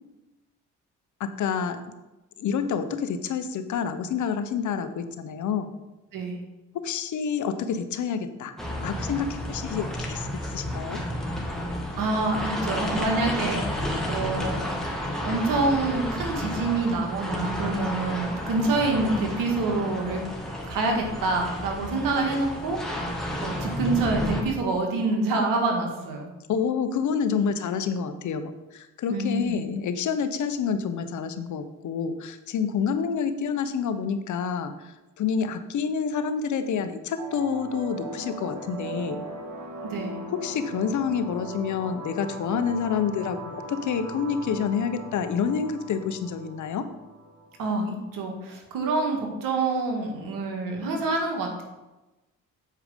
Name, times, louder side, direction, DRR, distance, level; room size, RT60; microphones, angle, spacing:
voice 1, 1.2-1.8 2.4-5.7 6.7-8.5 8.8-11.0 26.5-39.2 40.3-46.9, left 6 dB, 65° left, 10 dB, 0.8 m, -28 dB
sound 1, 8.6-24.4, equal, ahead, 1.7 m, -31 dB
voice 2, 12.0-14.6 15.2-20.2 20.7-22.8 23.4-26.3 29.1-29.5 39.8-40.2 47.6-51.6, right 3 dB, 85° right, 2 dB, 1.6 m, -27 dB
sound 2, 37.2-48.2, right 1 dB, 60° right, 1.5 m, -39 dB
7.7 x 4.9 x 5.1 m, 1.0 s
supercardioid pair, 70°, 32 cm